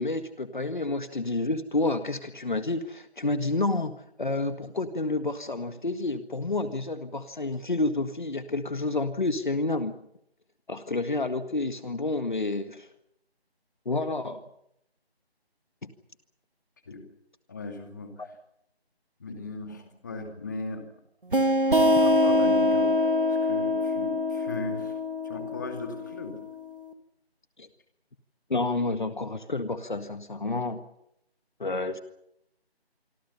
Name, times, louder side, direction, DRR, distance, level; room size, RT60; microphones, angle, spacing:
voice 1, 0.0-10.0 10.7-12.9 13.9-14.4 15.8-15.9 18.2-18.3 27.6-27.7 28.5-30.8 31.6-32.0, left 2 dB, 50° left, 9 dB, 1.8 m, -29 dB
voice 2, 17.5-18.3 19.2-20.8 21.4-22.9 23.3-25.0 25.2-26.3, left 3 dB, 20° left, 5 dB, 2.4 m, -37 dB
sound 1, 21.3-26.7, left 1 dB, 55° right, 2.8 m, -24 dB
26.0 x 25.0 x 5.7 m, 0.76 s
figure-of-eight pair, 170°, 32 cm